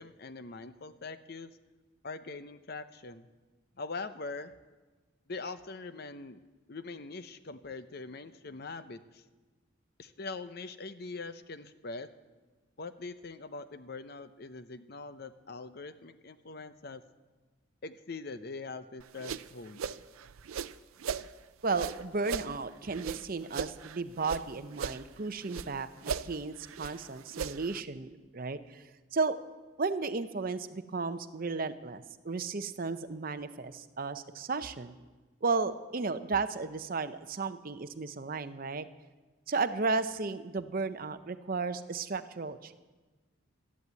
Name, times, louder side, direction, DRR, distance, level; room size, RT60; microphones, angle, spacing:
voice 1, 0.0-1.6 2.0-3.3 3.8-4.5 5.3-6.4 6.7-9.2 10.0-12.1 12.8-17.0 17.8-19.8, left 3 dB, 50° left, 12 dB, 0.7 m, -42 dB
sound 1, 19.0-21.3 21.7-24.4 24.7-25.7 26.0-27.8, right 6 dB, 85° right, 0.5 m, -38 dB
voice 2, 21.6-25.9 26.2-29.4 29.8-34.9 35.4-38.9 39.5-42.7, right 4 dB, 45° right, 11 dB, 0.6 m, -34 dB
13.5 x 11.0 x 8.2 m, 1.3 s
head